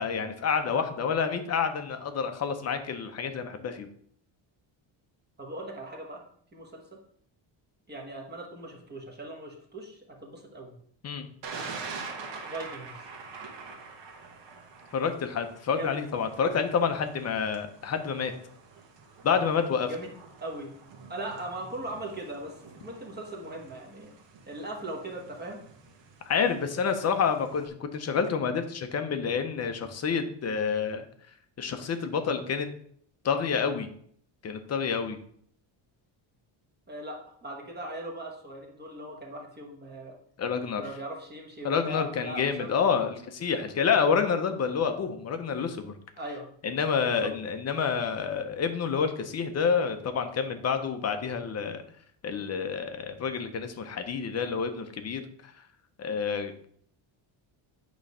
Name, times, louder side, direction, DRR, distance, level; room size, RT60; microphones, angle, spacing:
voice 1, 0.0-3.9 11.0-11.3 14.9-18.3 19.2-19.9 26.3-31.1 31.6-32.7 33.2-33.9 34.4-35.2 40.4-40.8 41.6-45.9 46.6-51.8 52.2-55.5 56.0-56.6, left 6 dB, 35° left, 7 dB, 0.7 m, -28 dB
voice 2, 5.4-6.2 6.5-6.8 7.9-10.8 12.4-13.0 15.8-16.0 19.9-20.1 20.4-20.7 21.1-24.1 24.5-25.6 36.9-40.1 40.8-42.7 46.2-46.5 47.0-47.3, right 1 dB, 20° right, 0 dB, 1.1 m, -39 dB
Thunder, 11.4-27.7, right 4 dB, 60° right, 1.3 m, -46 dB
8.9 x 3.1 x 5.4 m, 0.62 s
cardioid pair, 175°, 48 cm